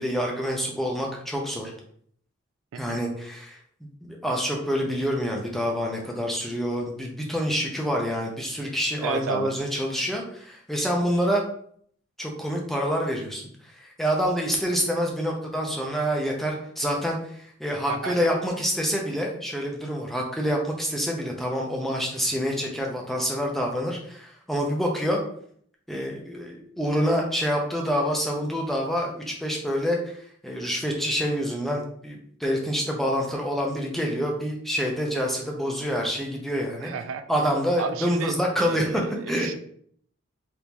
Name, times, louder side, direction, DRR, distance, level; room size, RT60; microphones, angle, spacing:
voice 1, 0.0-1.7 2.7-3.6 4.0-11.4 12.2-13.5 13.8-25.2 25.9-36.9 37.3-39.0 39.3-39.5, equal, ahead, -1 dB, 0.5 m, -27 dB
voice 2, 2.7-3.0 9.0-9.5 17.9-18.2 36.8-37.2 37.8-39.6, right 6 dB, 75° right, 9 dB, 0.3 m, -32 dB
3.5 x 2.5 x 2.9 m, 0.63 s
head